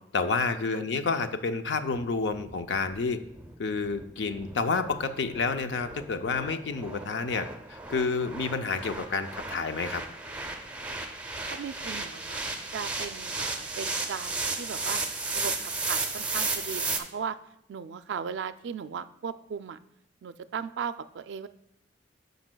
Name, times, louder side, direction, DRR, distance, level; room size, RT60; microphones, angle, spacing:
voice 1, 0.1-3.2 3.6-10.0, left 4 dB, 75° left, 9 dB, 0.5 m, -29 dB
sound 1, 2.3-17.0, right 3 dB, 10° right, 0.6 m, -34 dB
voice 2, 11.4-12.4 12.7-15.0 15.3-17.4 17.7-19.8 20.2-21.5, right 7 dB, 75° right, 13 dB, 0.3 m, -37 dB
13.5 x 5.3 x 2.2 m, 0.81 s
head